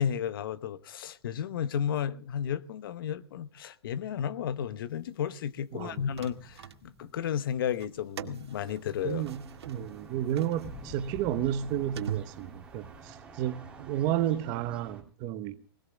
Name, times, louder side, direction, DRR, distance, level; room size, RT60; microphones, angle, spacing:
voice 1, 0.0-9.2, left 9 dB, 60° left, 1.0 m, -33 dB
voice 2, 5.7-6.1 9.0-15.6, right 11 dB, 30° right, 1.1 m, -32 dB
sound 1, 5.8-8.6 8.9-9.1 10.6-11.9, left 2 dB, 15° left, 2.9 m, -49 dB
sound 2, 5.8-7.2 7.7-13.0, right 10 dB, 85° right, 1.9 m, -43 dB
sound 3, 9.0-15.0, right 4 dB, 10° right, 3.0 m, -49 dB
19.0 x 18.5 x 3.5 m
hypercardioid pair, 160°, 13 cm